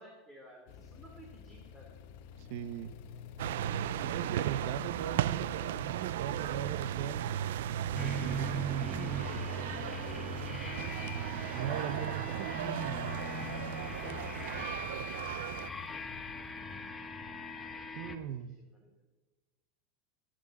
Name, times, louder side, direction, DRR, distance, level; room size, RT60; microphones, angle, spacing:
voice 1, 0.0-1.9 18.1-18.9, right 1 dB, 5° right, -1 dB, 2.7 m, -55 dB
sound 1, 0.7-17.9, left 8 dB, 60° left, 1.0 m, -51 dB
voice 2, 2.4-2.9 4.0-7.3 8.0-9.7 11.5-13.1 18.0-18.6, right 10 dB, 60° right, 12 dB, 0.8 m, -40 dB
sound 2, 3.4-15.7, right 12 dB, 85° right, 0.5 m, -36 dB
sound 3, 8.0-18.2, equal, 15° left, 1.1 m, -40 dB
25.5 x 10.5 x 4.2 m, 1.2 s
supercardioid pair, 145°, 0 cm